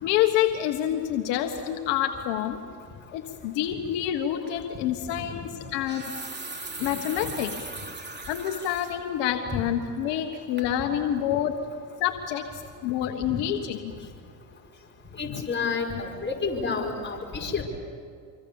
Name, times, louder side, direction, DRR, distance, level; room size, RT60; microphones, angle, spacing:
voice 1, 0.0-2.6 3.1-6.1 6.8-7.5 8.3-11.5 12.0-13.8 15.3-15.4, left 11 dB, 70° left, 5 dB, 1.6 m, -27 dB
sound 1, 4.5-4.6 5.6-9.0 9.4-9.5 10.0-10.3 10.6-10.7, right 3 dB, 20° right, 3.6 m, -39 dB
voice 2, 15.2-17.6, left 4 dB, 25° left, 0 dB, 5.5 m, -29 dB
26.0 x 25.0 x 7.2 m, 2.3 s
hypercardioid pair, 80°, 45 cm